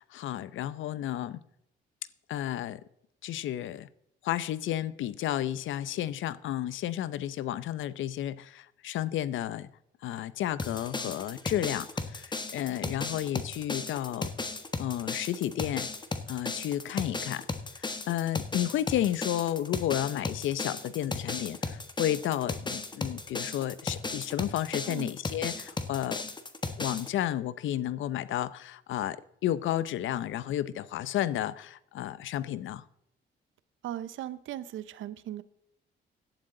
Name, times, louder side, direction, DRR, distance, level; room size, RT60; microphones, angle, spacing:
voice 1, 0.0-1.4 2.3-2.8 3.2-3.9 4.2-9.7 10.0-14.3 14.8-15.9 16.3-17.5 17.8-26.2 26.8-32.8, left 12 dB, 75° left, 0.7 m, -32 dB
sound 1, 10.6-27.1, left 3 dB, 20° left, 1.3 m, -35 dB
voice 2, 33.8-35.4, right 12 dB, 80° right, 0.9 m, -38 dB
16.5 x 11.5 x 3.8 m
cardioid pair, 90°, 20 cm